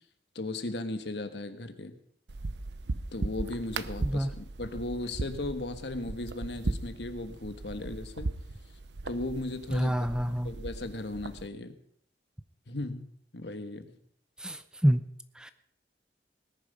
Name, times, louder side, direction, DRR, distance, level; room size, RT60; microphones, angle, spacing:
voice 1, 0.3-2.0 3.1-8.3 9.1-9.9 10.4-11.8 12.7-13.1 13.3-13.9, left 2 dB, 80° left, 9 dB, 1.4 m, -36 dB
sound 1, 2.3-11.5, right 2 dB, 80° right, 0.8 m, -37 dB
voice 2, 9.7-10.5 14.4-15.0 15.4-15.5, equal, 5° right, 11 dB, 0.6 m, -27 dB
19.0 x 10.5 x 5.2 m, 0.67 s
head